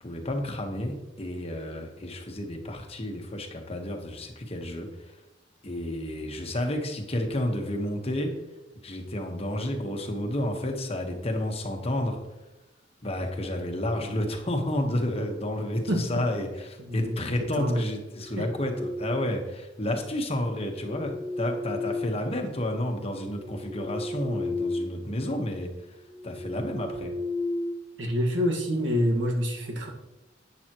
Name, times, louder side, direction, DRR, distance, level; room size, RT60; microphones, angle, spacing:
voice 1, 0.0-5.2 5.6-8.3 8.8-12.2 13.0-27.1, left 1 dB, 30° left, 3 dB, 1.3 m, -31 dB
voice 2, 15.9-16.2 16.8-17.1 17.5-17.8 18.4-18.5 28.0-29.9, equal, 65° right, 1 dB, 1.7 m, -27 dB
sound 1, 18.1-19.6 20.6-22.7 23.2-25.1 25.4-25.6 26.1-28.5, left 2 dB, 5° right, 0.3 m, -34 dB
11.0 x 9.0 x 3.0 m, 1.0 s
head